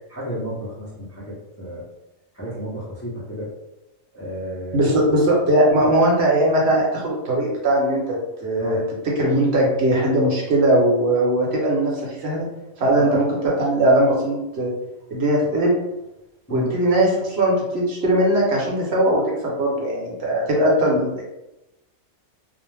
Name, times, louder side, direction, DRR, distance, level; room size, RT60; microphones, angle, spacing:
voice 1, 0.1-1.8 2.3-3.5 4.1-4.9 5.7-5.9 8.6-8.8 12.9-13.2 16.5-16.7, equal, 25° left, -8 dB, 0.3 m, -32 dB
voice 2, 4.7-8.8 9.2-12.5 12.8-14.7 15.1-15.7 16.5-21.2, right 1 dB, 60° right, -3 dB, 0.9 m, -19 dB
2.4 x 2.1 x 3.1 m, 0.96 s
omnidirectional pair, 1.4 m